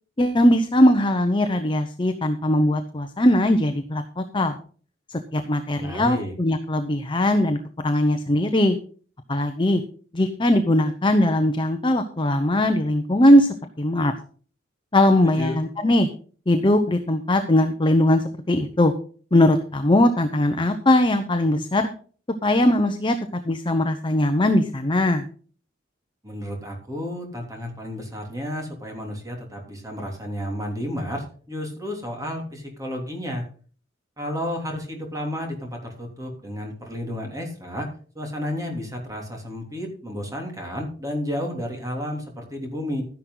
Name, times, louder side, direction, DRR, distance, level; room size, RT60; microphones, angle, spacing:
voice 1, 0.2-4.6 5.1-7.6 7.8-8.8 9.3-9.8 10.1-13.5 13.8-14.1 14.9-16.1 16.5-18.9 19.3-21.9 22.4-23.2 23.4-25.3, left 1 dB, 25° left, 8 dB, 0.9 m, -20 dB
voice 2, 5.7-6.3 15.2-15.6 26.2-33.4 34.2-43.0, equal, 15° right, 1 dB, 3.1 m, -32 dB
12.5 x 10.5 x 3.9 m, 0.42 s
head